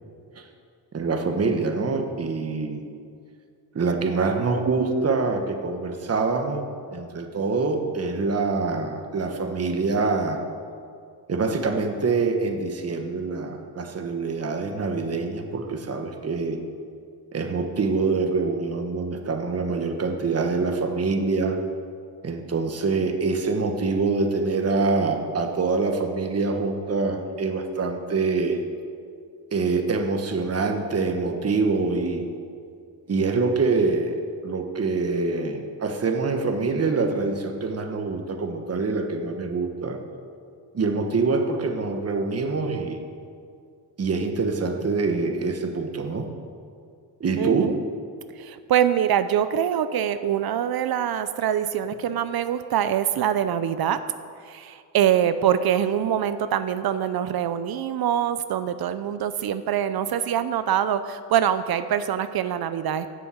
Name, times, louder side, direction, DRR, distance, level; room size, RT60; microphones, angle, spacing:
voice 1, 0.9-2.9 3.7-6.6 6.9-10.4 11.3-16.6 17.3-21.6 22.2-28.6 29.5-32.3 33.1-34.1 34.4-40.0 40.7-43.0 44.0-46.3 47.2-47.7, right 4 dB, 35° right, 5 dB, 1.3 m, -25 dB
voice 2, 47.4-47.7 48.4-54.0 54.4-63.1, right 9 dB, 65° right, 12 dB, 0.6 m, -24 dB
11.0 x 7.1 x 7.7 m, 2.3 s
cardioid pair, 90°, 41 cm